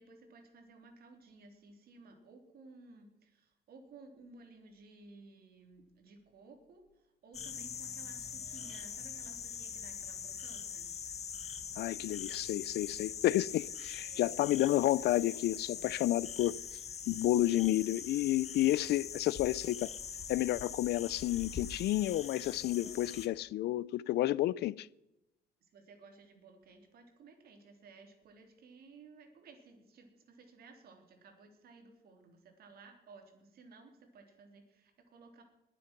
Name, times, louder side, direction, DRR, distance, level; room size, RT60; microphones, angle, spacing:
voice 1, 0.0-10.9 14.0-14.4 15.8-15.9 25.6-35.4, right 3 dB, 65° right, 3.4 m, -57 dB
sound 1, 7.3-23.3, left 7 dB, 40° left, 1.2 m, -43 dB
voice 2, 11.8-16.6 17.1-19.9 20.3-24.9, left 15 dB, 85° left, 0.4 m, -31 dB
20.5 x 7.9 x 6.0 m
cardioid pair, 155°, 17 cm